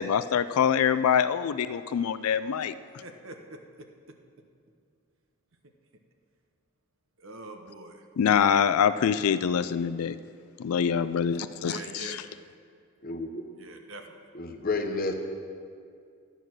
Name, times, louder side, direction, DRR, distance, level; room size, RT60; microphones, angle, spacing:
voice 1, 0.0-2.7 8.2-10.2 10.6-12.1, left 7 dB, 90° left, 14 dB, 0.4 m, -25 dB
voice 2, 3.0-4.2 5.6-5.7 7.2-8.1 11.6-12.2 13.5-14.3, right 2 dB, 70° right, 4 dB, 0.9 m, -44 dB
voice 3, 13.0-13.5 14.3-15.1, left 3 dB, 40° left, 5 dB, 1.0 m, -30 dB
12.5 x 9.1 x 6.2 m, 2.3 s
head